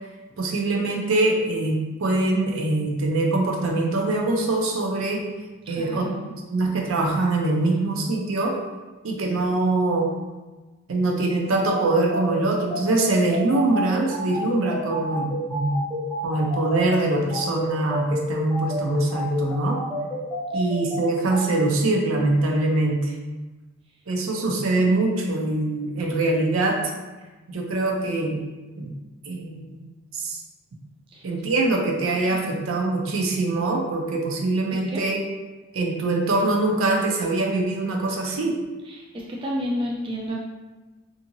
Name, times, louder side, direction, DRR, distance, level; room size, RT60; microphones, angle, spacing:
voice 1, 0.4-5.3 5.7-6.1 6.5-8.5 9.0-10.1 10.9-15.9 16.2-19.8 20.5-23.2 24.1-26.8 27.5-28.4 28.8-28.9 29.3-29.8 30.1-30.4 31.2-35.2 35.7-38.5, right 2 dB, 75° right, 0 dB, 0.5 m, -23 dB
voice 2, 5.7-6.2 20.5-20.6 31.1-31.3 32.3-32.6 34.7-35.0 38.9-40.4, equal, 25° right, -3 dB, 0.3 m, -31 dB
sound 1, 11.5-21.4, left 1 dB, 5° left, 0.7 m, -30 dB
2.7 x 2.7 x 2.6 m, 1.2 s
head